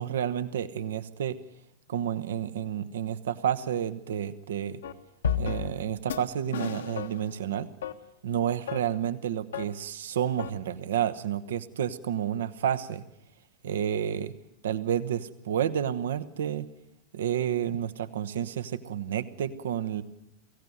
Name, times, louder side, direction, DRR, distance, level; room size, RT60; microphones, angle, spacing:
voice 1, 0.0-1.4 1.9-4.8 5.4-7.7 8.2-13.0 13.6-14.3 14.6-16.7 17.1-20.0, right 9 dB, 60° right, 12 dB, 1.1 m, -30 dB
sound 1, 4.8-4.9 5.2-5.8 6.1-6.2 6.5-7.3 7.8-7.9 8.7-8.8 9.5-9.6 10.4-10.5, left 8 dB, 65° left, 1.4 m, -31 dB
23.0 x 16.5 x 9.4 m, 0.86 s
figure-of-eight pair, 90°, 0 cm